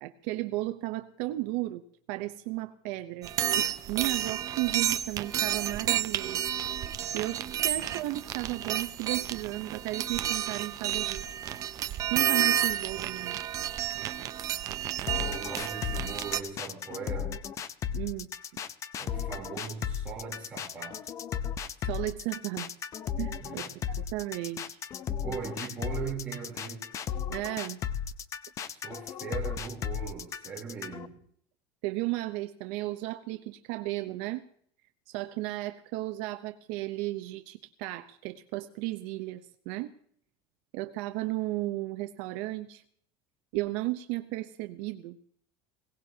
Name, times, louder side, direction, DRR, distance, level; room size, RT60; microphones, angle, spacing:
voice 1, 0.0-1.8 2.1-6.5 7.1-11.2 12.1-13.4 17.9-18.3 21.8-22.7 23.2-24.8 27.3-27.8 31.8-34.5 35.1-39.9 40.7-42.8 43.5-45.2, right 18 dB, 60° right, 0.8 m, -34 dB
sound 1, 3.2-16.4, right 11 dB, 30° right, 0.6 m, -31 dB
sound 2, 15.1-31.1, left 8 dB, 25° left, 0.6 m, -35 dB
voice 2, 15.1-17.4 19.0-21.0 23.4-23.8 25.2-26.8 28.7-31.2, right 6 dB, 10° right, 3.4 m, -39 dB
21.5 x 18.0 x 2.8 m
cardioid pair, 175°, 12 cm